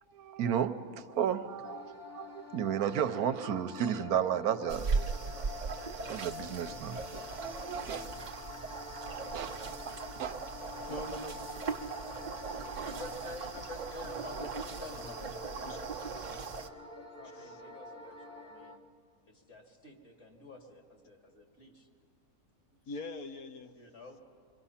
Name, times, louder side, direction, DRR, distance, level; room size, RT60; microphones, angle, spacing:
voice 1, 0.1-5.3 5.7-7.0 7.4-8.0 9.3-9.5 9.8-10.3, right 9 dB, 85° right, 10 dB, 1.2 m, -33 dB
sound 1, 1.6-18.8, left 5 dB, 10° left, 1.0 m, -48 dB
sound 2, 4.7-16.7, right 5 dB, 40° right, 0.7 m, -39 dB
voice 2, 9.2-9.6 10.9-11.4 12.7-12.8 14.4-15.2 15.6-15.8 16.3-16.4 17.3-17.6 22.9-23.7, left 2 dB, 85° left, 8 dB, 1.4 m, -44 dB
voice 3, 12.8-15.9 16.9-18.8 19.3-21.9 23.8-24.2, left 1 dB, 50° left, 1 dB, 2.7 m, -49 dB
26.5 x 23.5 x 5.7 m, 2.1 s
omnidirectional pair, 1.5 m